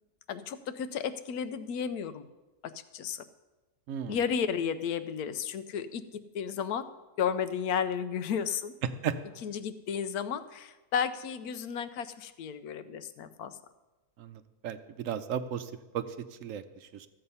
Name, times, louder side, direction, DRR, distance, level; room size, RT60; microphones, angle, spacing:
voice 1, 0.3-2.3 2.9-3.2 4.1-6.8 7.2-8.7 9.4-13.6, left 7 dB, 75° left, 12 dB, 1.2 m, -33 dB
voice 2, 3.9-4.2 8.8-9.2 14.2-17.1, right 8 dB, 65° right, 11 dB, 0.9 m, -35 dB
13.5 x 7.9 x 5.5 m, 1.1 s
omnidirectional pair, 1.6 m